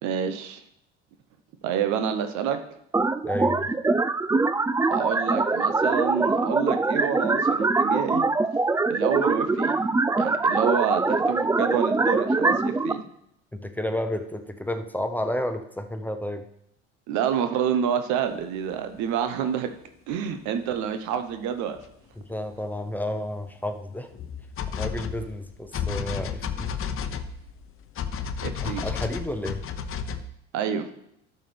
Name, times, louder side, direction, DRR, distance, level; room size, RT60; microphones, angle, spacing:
voice 1, 0.0-0.6 1.6-2.6 4.8-8.3 8.9-9.8 10.2-13.0 17.1-19.7 20.1-21.8 28.4-28.9 30.5-30.9, right 8 dB, 65° right, 8 dB, 1.0 m, -28 dB
sound 1, 2.9-12.9, right 3 dB, 10° right, 0.4 m, -23 dB
voice 2, 3.2-3.7 13.5-16.4 22.2-24.1 24.7-26.7 28.6-29.6, left 1 dB, 5° left, 7 dB, 0.9 m, -31 dB
sound 2, 20.1-20.2 21.8-21.9 22.3-22.4 24.1-30.2, left 7 dB, 45° left, 0.8 m, -32 dB
12.5 x 6.6 x 3.4 m, 0.78 s
hypercardioid pair, 65°, 31 cm